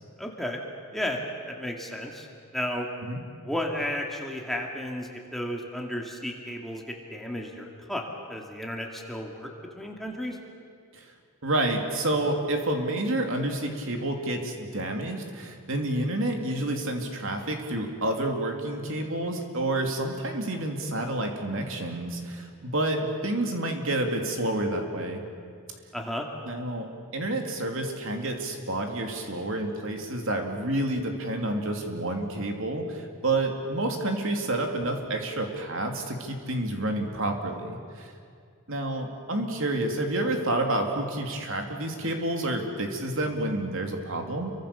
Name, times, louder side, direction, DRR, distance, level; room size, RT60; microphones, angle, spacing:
voice 1, 0.2-0.6 0.9-1.2 1.5-2.3 2.5-2.9 3.4-9.5 9.7-10.4 25.9-26.3, left 1 dB, ahead, 0 dB, 2.4 m, -33 dB
voice 2, 11.4-25.2 26.4-26.9 27.1-38.1 38.7-44.5, right 1 dB, 60° right, 3 dB, 3.1 m, -29 dB
29.0 x 24.0 x 7.0 m, 2.2 s
head